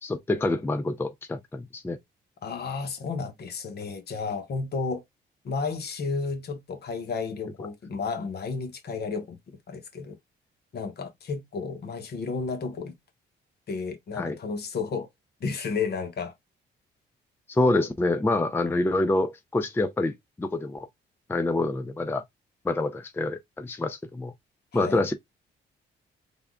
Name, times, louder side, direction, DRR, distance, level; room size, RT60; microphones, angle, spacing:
voice 1, 0.0-2.0 14.2-14.4 17.5-20.9 21.3-22.2 22.6-24.3 24.7-25.1, left 2 dB, 10° left, 0.4 m, -26 dB
voice 2, 2.4-5.0 5.4-10.2 10.7-12.9 13.7-15.1 15.4-16.3 24.7-25.1, left 4 dB, 55° left, 1.0 m, -32 dB
3.5 x 2.3 x 3.6 m
cardioid pair, 90°, 20 cm